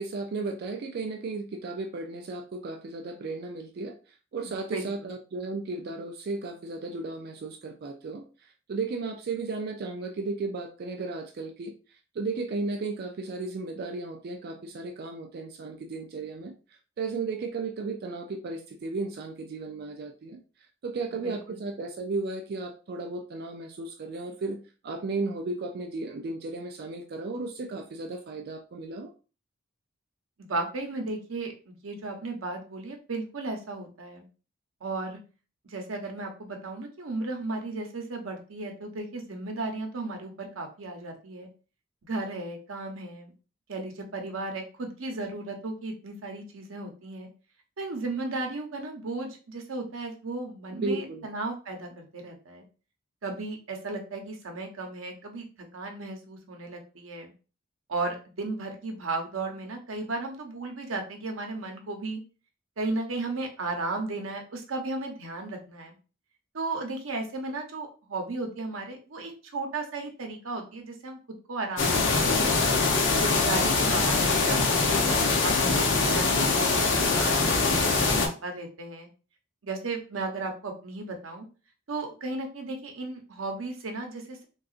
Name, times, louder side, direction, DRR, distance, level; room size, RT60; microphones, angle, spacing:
voice 1, 0.0-4.0 4.3-11.7 12.1-16.5 17.0-20.4 20.8-24.6 24.8-29.1 50.7-51.3, right 3 dB, 50° right, 3 dB, 0.4 m, -34 dB
voice 2, 4.7-5.1 21.2-21.6 30.4-34.2 34.8-35.2 35.6-41.5 42.0-43.3 43.7-47.3 47.8-52.6 53.2-57.3 57.9-62.2 62.8-65.9 66.5-71.2 71.5-72.1 73.1-75.0 75.4-79.1 79.6-81.5 81.9-84.5, right 2 dB, 85° right, 3 dB, 0.8 m, -35 dB
sound 1, 71.8-78.3, left 3 dB, 65° left, 0.7 m, -23 dB
3.7 x 2.3 x 2.4 m, 0.34 s
head